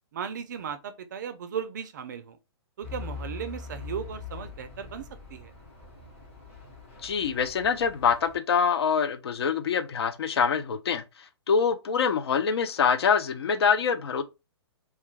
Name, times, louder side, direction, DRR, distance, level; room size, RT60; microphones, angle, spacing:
voice 1, 0.1-2.4 2.8-5.5, right 8 dB, 40° right, 0.4 m, -36 dB
Truck / Idling, 2.8-8.4, left 5 dB, 30° left, 0.9 m, -42 dB
voice 2, 7.0-11.0 11.5-14.2, left 6 dB, 65° left, 0.4 m, -25 dB
2.2 x 2.2 x 3.1 m
hypercardioid pair, 160°, 14 cm